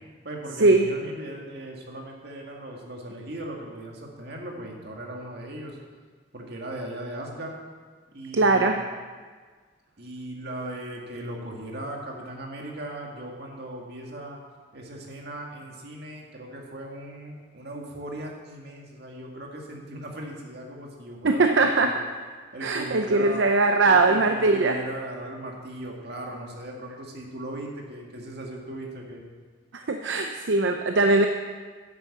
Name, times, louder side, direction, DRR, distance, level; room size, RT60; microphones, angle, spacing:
voice 1, 0.2-5.8 6.3-7.5 8.1-8.7 10.0-14.4 14.7-21.9 22.5-23.5 23.8-29.2, right 1 dB, 60° right, 0 dB, 2.1 m, -38 dB
voice 2, 8.3-8.8 21.2-21.9 22.6-24.8 29.7-31.3, right 3 dB, 75° right, 4 dB, 0.7 m, -21 dB
10.0 x 8.1 x 7.2 m, 1.5 s
head